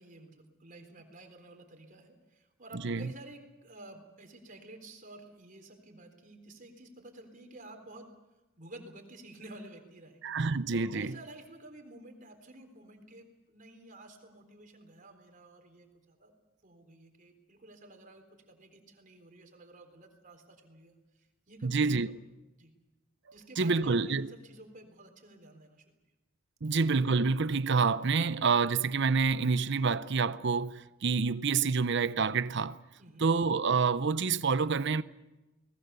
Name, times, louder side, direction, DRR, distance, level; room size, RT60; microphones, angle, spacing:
voice 1, 0.0-8.1 8.6-10.3 10.7-16.3 16.6-22.2 22.6-22.7 23.3-25.8 33.0-33.3, right 2 dB, 45° right, 3.8 m, -51 dB
voice 2, 2.7-3.1 10.2-11.1 21.6-22.1 23.6-24.3 26.6-32.8 33.2-35.0, right 4 dB, 60° right, 0.7 m, -28 dB
30.0 x 19.5 x 6.9 m
head